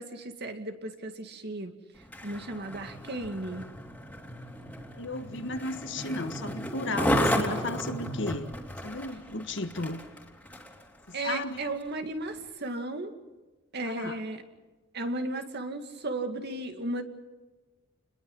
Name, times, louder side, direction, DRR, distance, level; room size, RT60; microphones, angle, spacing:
voice 1, 0.0-1.7 2.2-3.6 11.1-13.1 13.7-14.4 14.9-17.0, right 2 dB, 55° right, 6 dB, 2.3 m, -35 dB
Skateboard, 2.0-10.8 11.4-11.5, equal, 5° left, 3.1 m, -33 dB
voice 2, 5.0-8.5 8.8-10.0 11.1-11.6 13.9-14.2, left 2 dB, 60° left, 7 dB, 1.8 m, -34 dB
29.5 x 21.5 x 5.5 m, 1.2 s
head